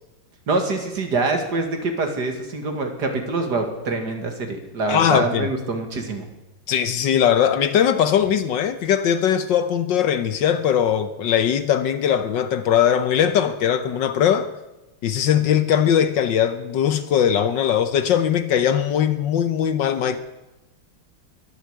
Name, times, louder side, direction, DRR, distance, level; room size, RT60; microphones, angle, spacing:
voice 1, 0.5-6.3, right 3 dB, 55° right, 2.5 m, -25 dB
voice 2, 4.9-5.5 6.7-14.5 15.0-20.2, left 9 dB, 65° left, 1.4 m, -20 dB
22.0 x 8.2 x 8.1 m
omnidirectional pair, 2.3 m